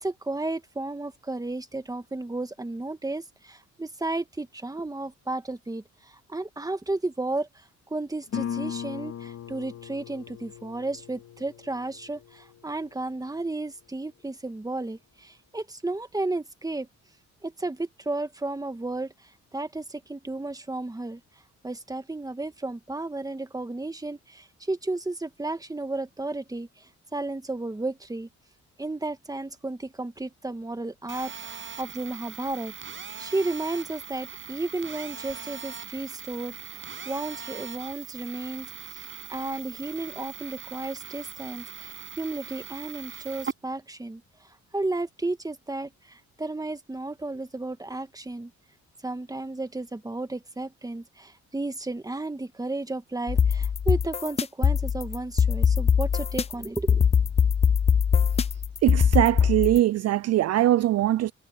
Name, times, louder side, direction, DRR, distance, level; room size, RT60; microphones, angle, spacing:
voice 1, 0.0-7.5 7.9-16.9 17.4-19.1 19.5-21.2 21.6-28.3 28.8-48.5 49.0-57.0, right 2 dB, 10° right, 1.7 m, -33 dB
Guitar, 8.3-13.7, left 8 dB, 55° left, 4.5 m, -38 dB
Telephone, 31.1-43.5, right 8 dB, 40° right, 6.7 m, -40 dB
sound 1, 53.3-59.8, left 7 dB, 20° left, 0.3 m, -22 dB
voice 2, 58.8-61.3, right 14 dB, 60° right, 0.5 m, -22 dB
cardioid pair, 90°, 30 cm